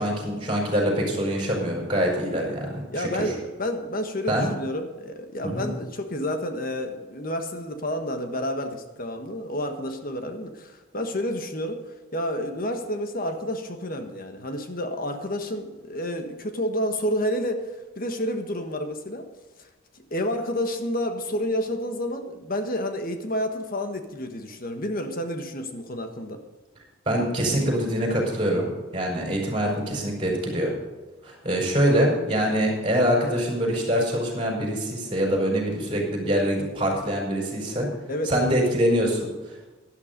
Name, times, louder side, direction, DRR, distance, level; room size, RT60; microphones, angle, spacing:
voice 1, 0.0-3.3 4.3-4.5 5.4-5.7 27.0-30.7 31.2-37.9 38.2-39.3, equal, 25° right, 0 dB, 4.9 m, -24 dB
voice 2, 2.9-17.7 17.9-19.3 19.6-19.7 19.9-26.4 38.1-38.5, equal, 45° left, 6 dB, 1.4 m, -30 dB
12.0 x 12.0 x 5.2 m, 1.2 s
head